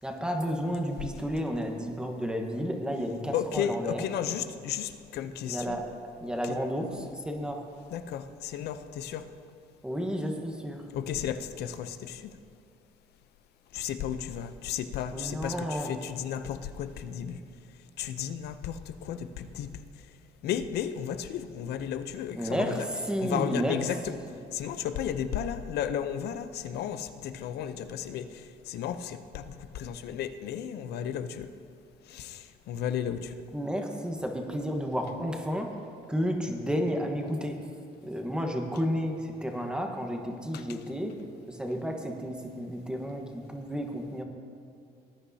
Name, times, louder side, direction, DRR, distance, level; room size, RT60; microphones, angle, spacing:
voice 1, 0.0-4.1 5.4-5.9 6.2-7.6 9.8-10.9 15.1-16.0 22.3-24.3 33.5-35.8 36.1-37.6 38.0-41.2 41.5-44.2, equal, 5° right, 3 dB, 1.3 m, -32 dB
voice 2, 3.3-5.8 6.5-6.6 7.9-9.3 10.9-12.2 13.7-17.4 18.0-19.8 20.4-22.8 23.2-24.1 24.5-31.5 32.1-33.3, left 9 dB, 75° left, 10 dB, 0.7 m, -34 dB
19.5 x 9.9 x 2.8 m, 2.6 s
cardioid pair, 110°, 17 cm